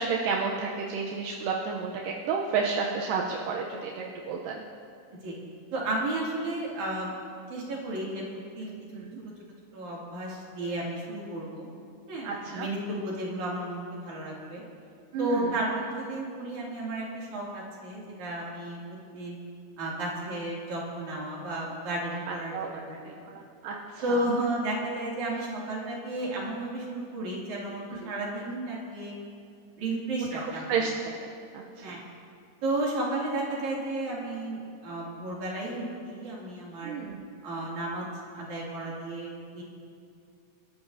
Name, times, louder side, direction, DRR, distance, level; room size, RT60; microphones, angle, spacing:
voice 1, 0.0-4.6 8.9-9.2 12.2-12.7 15.1-15.5 22.3-24.3 27.9-28.1 30.2-30.9 31.2-32.0 36.8-37.3, right 5 dB, 85° right, -1 dB, 2.6 m, -32 dB
voice 2, 5.7-7.1 7.5-8.7 9.7-11.7 12.1-14.6 15.2-18.8 19.1-19.4 19.8-22.5 22.9-23.3 24.0-29.1 29.8-30.7 31.8-32.0 32.6-36.9 37.4-38.1 38.3-39.6, right 1 dB, 60° right, -5 dB, 4.1 m, -33 dB
29.0 x 13.0 x 2.8 m, 2.4 s
omnidirectional pair, 3.9 m